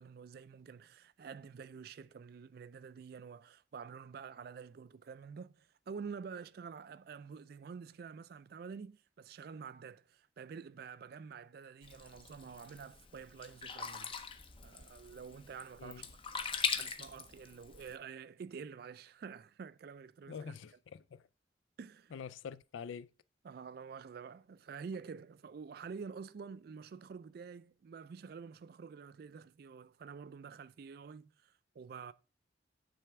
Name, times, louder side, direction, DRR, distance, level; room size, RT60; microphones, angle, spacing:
voice 1, 0.0-14.1 14.6-16.0 16.4-20.6 21.8-22.1 23.4-32.1, right 6 dB, 50° right, 0.3 m, -48 dB
Sink (filling or washing), 11.8-17.9, left 5 dB, 25° left, 0.5 m, -41 dB
voice 2, 20.3-21.2 22.1-23.1, left 6 dB, 80° left, 0.4 m, -45 dB
9.0 x 3.4 x 4.6 m
head